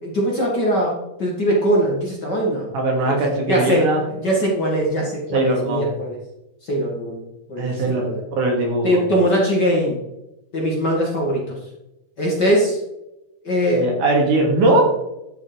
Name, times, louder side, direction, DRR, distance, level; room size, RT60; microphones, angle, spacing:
voice 1, 0.0-0.9 1.2-2.7 3.0-3.2 3.5-3.9 4.2-6.2 6.7-7.2 7.5-8.2 8.8-10.0 10.5-11.4 12.2-12.8 13.4-13.9, equal, 35° left, -3 dB, 2.1 m, -21 dB
voice 2, 2.7-4.1 5.3-6.0 7.6-8.1 8.4-9.0 13.7-14.8, right 2 dB, 65° right, 0 dB, 3.5 m, -20 dB
12.0 x 5.4 x 5.1 m, 0.92 s
omnidirectional pair, 3.9 m